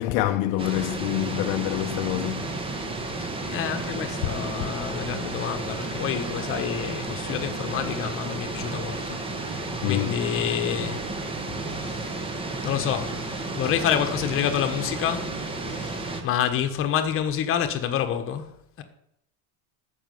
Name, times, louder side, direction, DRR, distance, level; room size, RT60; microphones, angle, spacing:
voice 1, 0.0-2.6 9.8-10.2 11.5-11.6, left 14 dB, 60° left, 0.9 m, -26 dB
sound 1, 0.6-16.2, right 2 dB, 10° right, 1.2 m, -32 dB
voice 2, 3.2-11.1 11.6-12.2 12.6-15.4 15.6-18.8, left 9 dB, 30° left, 1.4 m, -28 dB
14.0 x 6.2 x 9.3 m
cardioid pair, 180°, 43 cm